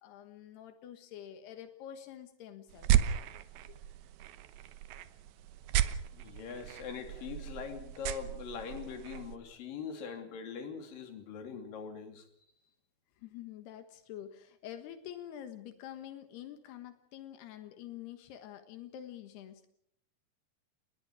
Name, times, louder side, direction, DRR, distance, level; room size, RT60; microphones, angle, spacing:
voice 1, 0.0-3.0 3.7-3.8 13.2-19.7, left 11 dB, 85° left, 7 dB, 3.5 m, -47 dB
sound 1, 2.7-9.4, right 11 dB, 75° right, 2.9 m, -34 dB
voice 2, 6.1-12.3, left 6 dB, 60° left, 6 dB, 4.4 m, -42 dB
30.0 x 21.5 x 4.8 m, 0.68 s
omnidirectional pair, 4.5 m